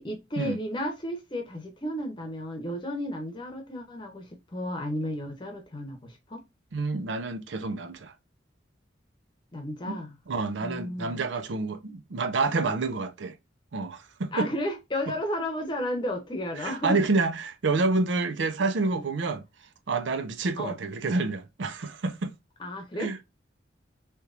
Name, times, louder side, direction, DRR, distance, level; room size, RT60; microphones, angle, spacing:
voice 1, 0.0-6.4 9.5-10.2 10.6-11.2 14.3-17.0 18.9-19.1 20.6-20.8 22.6-23.2, left 1 dB, 25° left, 0.8 m, -33 dB
voice 2, 6.7-8.1 9.8-10.0 10.3-13.3 13.7-14.5 16.6-19.5 19.9-22.3 23.0-23.2, right 3 dB, 75° right, 0.5 m, -28 dB
3.4 x 2.9 x 2.4 m
head